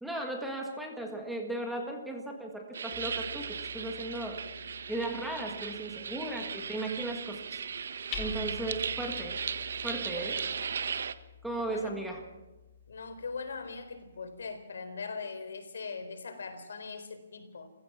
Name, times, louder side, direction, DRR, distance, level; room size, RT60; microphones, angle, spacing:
voice 1, 0.0-7.6 7.9-9.4 9.8-10.4 11.4-12.2, right 2 dB, ahead, 2 dB, 1.6 m, -37 dB
sound 1, 2.7-11.1, right 6 dB, 60° right, 1.2 m, -37 dB
Hammer, 2.9-14.6, left 6 dB, 20° left, 2.2 m, -49 dB
voice 2, 6.3-6.7 11.6-12.0 12.9-17.7, left 4 dB, 75° left, 9 dB, 3.9 m, -41 dB
28.5 x 16.0 x 6.1 m, 1.1 s
hypercardioid pair, 175°, 0 cm